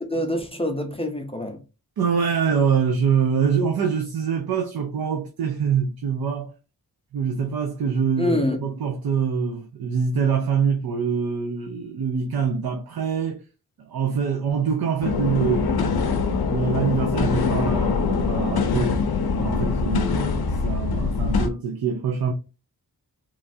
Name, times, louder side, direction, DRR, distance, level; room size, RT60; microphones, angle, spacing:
voice 1, 0.0-1.6 8.2-8.6, left 1 dB, 15° left, 0.5 m, -26 dB
voice 2, 2.0-6.5 7.1-13.4 13.8-16.0 16.5-19.0 19.4-22.3, right 6 dB, 75° right, 0.5 m, -24 dB
sound 1, 15.0-21.5, left 5 dB, 80° left, 0.5 m, -23 dB
3.1 x 2.3 x 2.6 m
wide cardioid pair, 90°, 37 cm